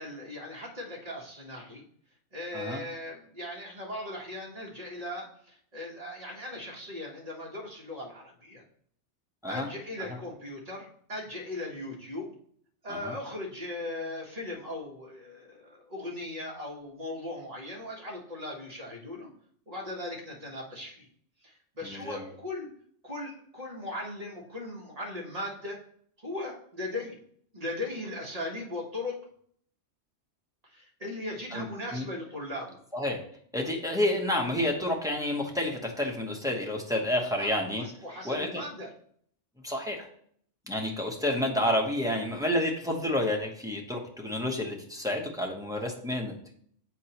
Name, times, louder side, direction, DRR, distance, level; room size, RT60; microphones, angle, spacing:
voice 1, 0.0-1.8 2.3-8.6 9.5-12.3 12.8-19.3 19.7-21.1 21.4-22.7 23.0-25.8 26.2-27.2 27.5-29.2 30.6-32.8 37.3-38.9 41.0-41.1, left 1 dB, 35° right, -2 dB, 1.4 m, -38 dB
voice 2, 21.8-22.2 31.5-31.6 31.9-32.1 32.9-33.2 33.5-37.8 38.2-38.6 39.6-40.1 40.7-46.3, left 1 dB, 5° right, -1 dB, 0.8 m, -29 dB
8.1 x 4.5 x 2.9 m, 0.62 s
omnidirectional pair, 1.2 m